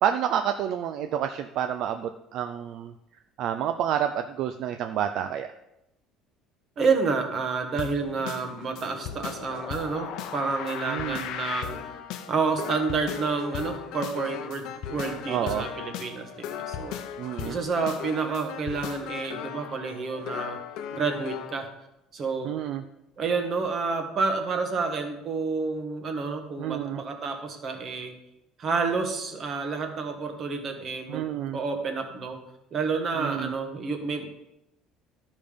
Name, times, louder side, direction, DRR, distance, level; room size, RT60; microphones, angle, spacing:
voice 1, 0.0-2.9 3.4-5.5 10.9-11.2 15.3-15.7 17.2-17.6 22.4-22.8 26.6-27.0 31.1-31.6 33.2-33.5, right 10 dB, 50° right, 8 dB, 0.4 m, -29 dB
voice 2, 6.8-11.9 12.3-17.0 17.4-20.6 20.9-21.7 22.1-22.5 23.2-28.1 28.6-31.3 31.5-32.4 32.7-34.3, right 4 dB, 30° right, 5 dB, 1.3 m, -29 dB
sound 1, 7.8-21.6, left 9 dB, 60° left, 0.7 m, -37 dB
12.5 x 5.3 x 5.1 m, 0.87 s
cardioid pair, 170°, 0 cm